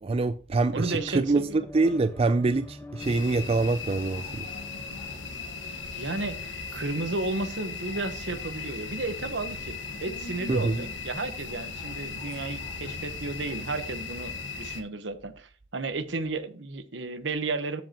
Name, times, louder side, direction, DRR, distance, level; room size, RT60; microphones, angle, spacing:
voice 1, 0.0-4.5 10.5-10.8, right 3 dB, 30° right, 0.4 m, -25 dB
sound 1, 0.7-8.1, left 1 dB, 10° left, 1.1 m, -47 dB
voice 2, 0.7-1.6 6.0-17.8, right 3 dB, 70° right, 1.1 m, -33 dB
sound 2, 3.0-14.8, left 4 dB, 75° left, 1.3 m, -37 dB
14.0 x 5.2 x 2.9 m
head